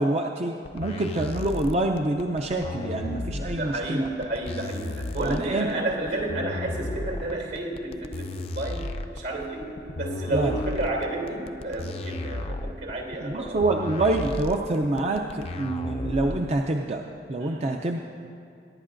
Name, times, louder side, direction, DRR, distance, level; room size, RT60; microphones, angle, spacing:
voice 1, 0.0-4.1 5.2-5.8 10.3-10.6 13.2-17.0 17.3-18.0, right 2 dB, 35° right, 3 dB, 0.5 m, -26 dB
sound 1, 0.6-16.6, left 2 dB, 35° left, 0.4 m, -34 dB
voice 2, 0.8-1.1 3.4-8.8 9.1-9.7 10.0-13.6 17.4-17.7, right 2 dB, 75° right, 0 dB, 2.7 m, -31 dB
23.0 x 11.0 x 2.6 m, 2.6 s
head